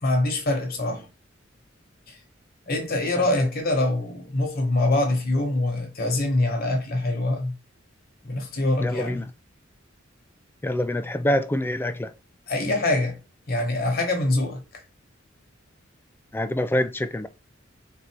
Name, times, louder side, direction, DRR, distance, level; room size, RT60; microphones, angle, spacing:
voice 1, 0.0-1.1 2.1-2.2 2.7-7.5 8.2-9.2 12.5-13.2 13.5-14.8, left 2 dB, 50° left, 1.3 m, -24 dB
voice 2, 8.8-9.3 10.6-12.1 16.3-17.3, left 1 dB, 10° left, 0.4 m, -25 dB
4.0 x 2.7 x 4.4 m
head